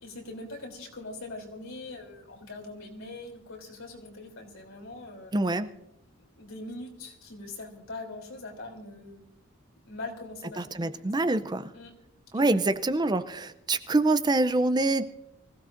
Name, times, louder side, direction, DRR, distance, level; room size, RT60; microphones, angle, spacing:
voice 1, 0.0-5.3 6.4-9.3 9.9-10.9 11.7-12.0 12.3-12.8, left 2 dB, 80° left, 1 dB, 3.3 m, -42 dB
voice 2, 5.3-5.7 10.6-11.7 12.3-15.0, right 2 dB, 20° right, 12 dB, 0.5 m, -25 dB
24.0 x 16.0 x 2.6 m, 0.85 s
head